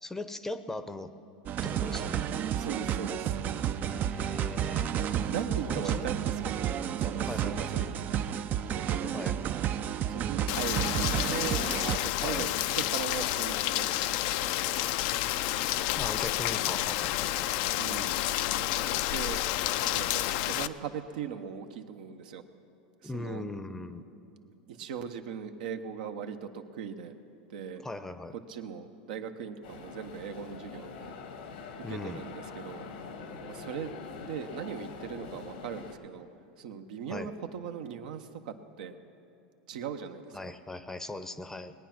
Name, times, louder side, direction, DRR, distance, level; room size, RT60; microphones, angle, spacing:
voice 1, 0.0-1.1 1.6-2.3 3.8-5.2 5.7-6.1 7.3-7.8 9.1-9.3 12.2-12.5 16.0-17.5 23.0-24.0 27.7-28.3 31.8-32.2 37.1-37.3 40.3-41.7, left 2 dB, 10° left, 11 dB, 0.7 m, -39 dB
sound 1, 1.5-12.0, right 10 dB, 40° right, 0.4 m, -31 dB
voice 2, 2.5-3.4 5.3-6.7 7.0-8.4 8.7-9.2 10.1-14.6 17.8-18.3 18.5-19.4 19.9-22.4 23.0-23.4 24.7-27.1 27.5-27.8 28.5-31.1 31.9-32.9 33.5-33.9 34.2-36.3 36.6-38.9 39.7-40.4, right 7 dB, 75° right, 7 dB, 0.9 m, -39 dB
Rain, 10.5-20.7, left 14 dB, 60° left, 0.4 m, -30 dB
sound 2, 29.6-35.9, left 5 dB, 85° left, 1.5 m, -44 dB
20.0 x 9.2 x 5.9 m, 2.7 s
hypercardioid pair, 110°, 5 cm